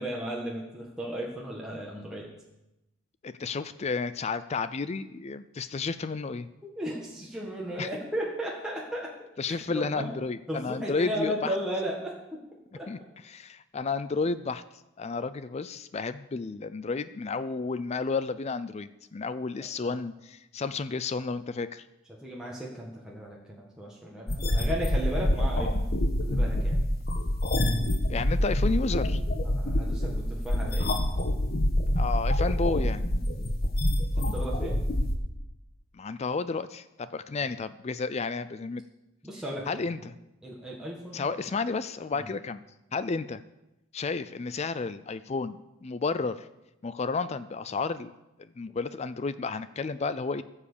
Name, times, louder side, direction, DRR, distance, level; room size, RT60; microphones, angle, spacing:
voice 1, 0.0-2.3 6.6-9.1 9.4-10.1 10.5-12.4 12.8-12.9 19.8-20.0 22.1-25.8 26.2-26.8 29.4-30.9 34.1-34.8 39.2-40.0 40.4-41.5 42.2-42.3, equal, 5° right, -4 dB, 1.7 m, -35 dB
voice 2, 3.2-6.5 7.8-7.9 9.4-11.5 12.9-13.0 13.2-14.6 15.0-21.8 28.1-29.2 32.0-33.0 35.9-38.8 39.7-40.2 41.1-42.6 42.9-43.4 43.9-46.5 46.8-48.1 48.4-50.4, left 4 dB, 30° left, 14 dB, 0.4 m, -32 dB
sound 1, 24.3-35.2, left 1 dB, 50° left, 1.3 m, -26 dB
15.0 x 7.3 x 6.8 m, 0.93 s
head